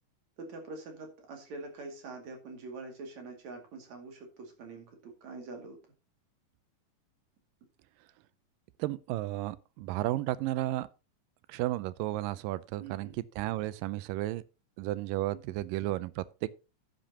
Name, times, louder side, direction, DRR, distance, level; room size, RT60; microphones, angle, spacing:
voice 1, 0.4-5.8 12.8-13.2 15.3-15.4, right 3 dB, 60° right, 3.5 m, -45 dB
voice 2, 8.8-10.9 11.5-13.1 13.4-14.4 14.8-16.5, right 16 dB, 90° right, 2.3 m, -33 dB
11.0 x 10.5 x 2.9 m
omnidirectional pair, 3.8 m